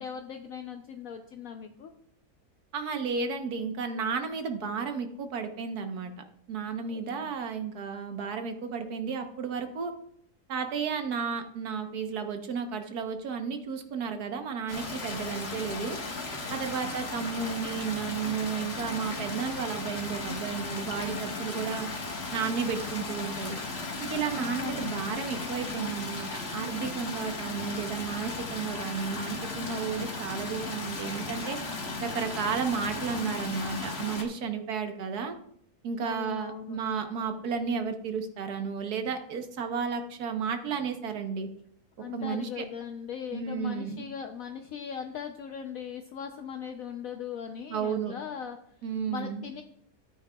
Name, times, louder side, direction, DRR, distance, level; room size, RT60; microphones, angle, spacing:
voice 1, 0.0-1.9 6.9-7.3 16.6-16.8 24.3-25.0 36.0-36.8 42.0-48.8 49.1-49.6, left 7 dB, 65° left, 5 dB, 1.0 m, -39 dB
voice 2, 2.7-6.1 6.5-9.9 10.5-16.0 16.5-21.9 22.3-23.6 24.0-31.6 32.0-35.4 35.8-41.5 42.1-42.6 43.3-44.1 47.7-48.1 48.8-49.4, right 6 dB, 75° right, 6 dB, 1.5 m, -33 dB
sound 1, 14.7-34.2, left 3 dB, 40° left, 1.6 m, -36 dB
13.5 x 8.7 x 2.3 m, 0.69 s
omnidirectional pair, 1.7 m